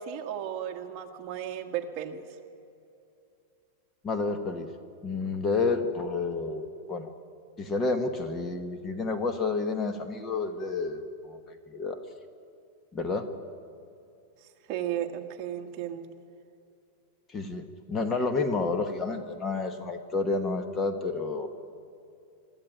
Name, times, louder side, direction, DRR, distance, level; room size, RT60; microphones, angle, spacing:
voice 1, 0.0-2.2 14.7-16.1, right 10 dB, 35° right, 4 dB, 1.7 m, -34 dB
voice 2, 4.0-4.7 5.0-7.1 7.6-12.0 12.9-13.3 17.3-21.5, left 3 dB, 20° left, 8 dB, 1.1 m, -30 dB
23.5 x 14.0 x 9.2 m, 2.6 s
supercardioid pair, 165°, 0 cm